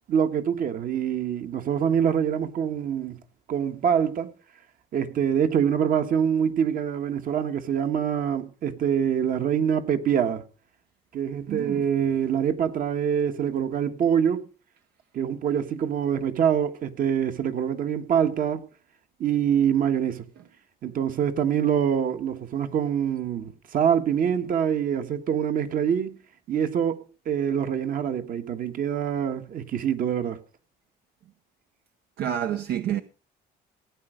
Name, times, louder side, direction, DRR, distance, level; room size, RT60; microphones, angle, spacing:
voice 1, 0.1-3.2 3.5-4.3 4.9-10.4 11.1-14.4 15.1-18.6 19.2-20.2 20.8-26.2 26.5-30.4, right 8 dB, 55° right, 1.5 m, -25 dB
voice 2, 11.5-11.9 32.2-33.0, right 10 dB, 75° right, 0.9 m, -28 dB
17.0 x 9.1 x 5.0 m
cardioid pair, 110°, 17 cm